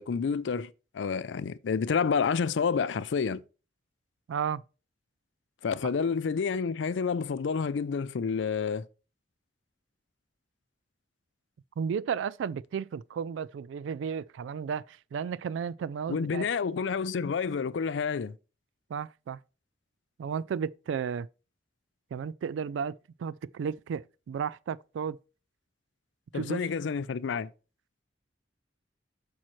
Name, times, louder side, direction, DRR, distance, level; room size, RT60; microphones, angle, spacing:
voice 1, 0.0-3.4 5.6-8.9 16.1-18.4 26.3-27.5, left 5 dB, 80° left, 0.4 m, -29 dB
voice 2, 4.3-4.6 11.8-16.5 18.9-19.4 20.2-21.3 22.1-25.2 26.3-26.6, right 7 dB, 85° right, 0.3 m, -33 dB
8.4 x 6.2 x 3.0 m
head